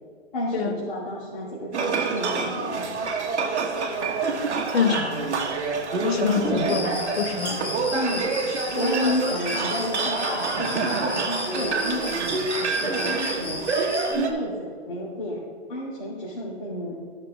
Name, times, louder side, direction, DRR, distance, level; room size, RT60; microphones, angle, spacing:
voice 1, 0.3-2.9 6.4-6.8 7.9-8.3 8.7-12.3 12.8-13.7 14.1-15.4 15.7-16.9, left 1 dB, 45° left, -9 dB, 2.8 m, -30 dB
sound 1, 1.7-14.3, right 4 dB, 80° right, 1.6 m, -27 dB
voice 2, 4.7-5.2 6.0-7.9, left 6 dB, 65° left, 3 dB, 1.6 m, -25 dB
Cricket, 6.7-14.1, left 2 dB, 10° left, 0.5 m, -35 dB
14.5 x 6.5 x 3.6 m, 2.1 s
hypercardioid pair, 170°, 34 cm